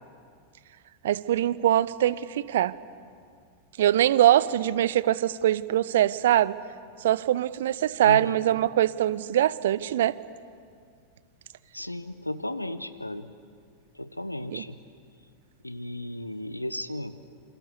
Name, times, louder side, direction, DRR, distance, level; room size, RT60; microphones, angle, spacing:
voice 1, 1.0-2.7 3.8-6.6 7.0-10.2 14.5-14.6, right 12 dB, 60° right, 19 dB, 0.7 m, -23 dB
voice 2, 8.0-8.4 11.7-13.3 13.9-14.8 15.6-17.2, left 1 dB, 85° left, 13 dB, 1.1 m, -34 dB
28.0 x 27.0 x 6.8 m, 2.2 s
figure-of-eight pair, 90°, 0 cm